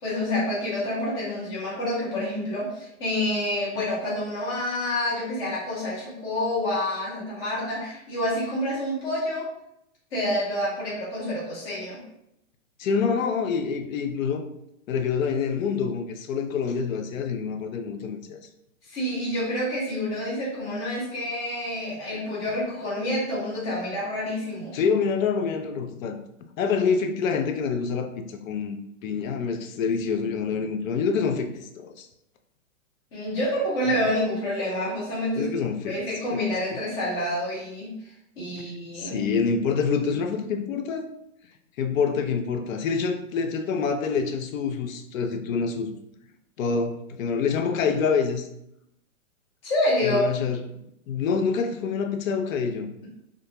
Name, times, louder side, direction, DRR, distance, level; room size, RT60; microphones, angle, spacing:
voice 1, 0.0-9.5 10.1-12.0 18.9-24.8 33.1-35.5 35.9-37.9 38.4-39.2 49.6-50.4, left 1 dB, 10° left, -8 dB, 0.3 m, -28 dB
voice 2, 12.8-14.5 14.9-18.4 24.7-26.2 26.6-28.8 29.0-32.1 35.4-36.0 36.3-36.4 36.7-36.8 38.9-41.1 41.8-45.9 46.6-48.5 50.0-50.6 51.1-52.9, left 5 dB, 75° left, 6 dB, 0.5 m, -26 dB
2.5 x 2.1 x 2.8 m, 0.79 s
hypercardioid pair, 135°, 41 cm